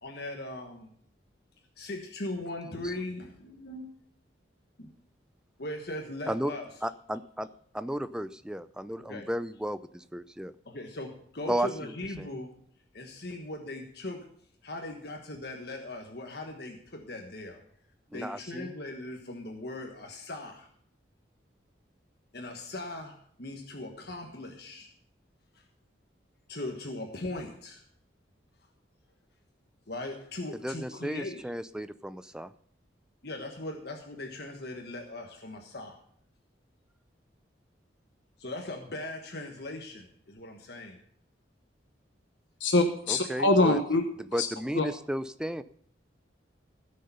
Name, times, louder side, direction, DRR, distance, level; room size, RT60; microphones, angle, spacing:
voice 1, 0.0-0.9 1.8-3.9 4.8-4.9 5.6-6.7 9.1-9.3 10.6-12.5 12.9-14.3 14.6-17.6 18.1-20.7 22.3-24.9 25.5-25.6 26.5-27.8 29.9-31.5 33.2-36.0 38.4-41.0, left 2 dB, 55° left, 3 dB, 1.4 m, -39 dB
voice 2, 6.8-7.5 7.7-10.5 11.5-12.3 18.1-18.7 30.6-32.5 43.1-43.8 44.3-45.6, right 1 dB, 5° right, 13 dB, 0.4 m, -34 dB
voice 3, 42.6-44.0 44.3-44.5 44.7-44.9, left 2 dB, 75° left, 5 dB, 1.1 m, -24 dB
16.0 x 6.6 x 5.5 m, 0.65 s
head